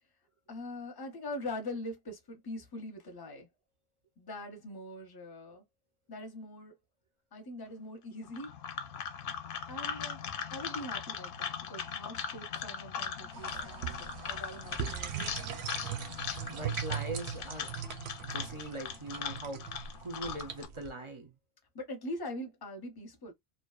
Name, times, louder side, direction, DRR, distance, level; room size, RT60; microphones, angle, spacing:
voice 1, 0.5-3.5 4.2-5.6 6.1-6.8 7.3-8.5 9.7-10.2 10.5-15.1 21.7-23.3, left 1 dB, 25° left, 0.6 m, -42 dB
sound 1, 8.3-20.6, left 7 dB, 65° left, 0.7 m, -40 dB
sound 2, 13.3-20.9, right 9 dB, 90° right, 0.8 m, -40 dB
voice 2, 16.5-17.7 18.2-19.6 20.0-21.3, right 2 dB, 40° right, 0.5 m, -41 dB
2.7 x 2.2 x 2.3 m
omnidirectional pair, 1.1 m